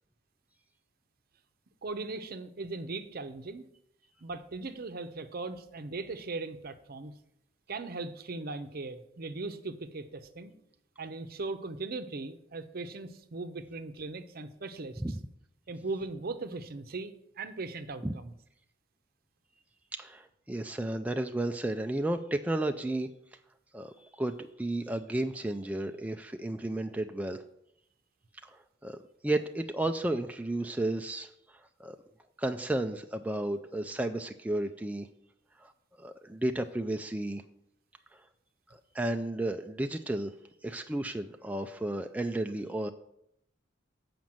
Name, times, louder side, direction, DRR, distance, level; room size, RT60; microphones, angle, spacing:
voice 1, 1.8-3.7 4.2-7.1 7.7-10.5 11.0-15.0 15.7-18.3, right 3 dB, 55° right, 10 dB, 0.7 m, -39 dB
voice 2, 19.9-23.1 23.7-27.4 28.4-29.0 29.2-32.0 32.4-35.1 35.6-35.7 36.0-37.4 38.7-40.3 40.6-42.9, right 1 dB, 10° right, 6 dB, 0.3 m, -33 dB
7.7 x 5.1 x 7.3 m, 0.76 s
head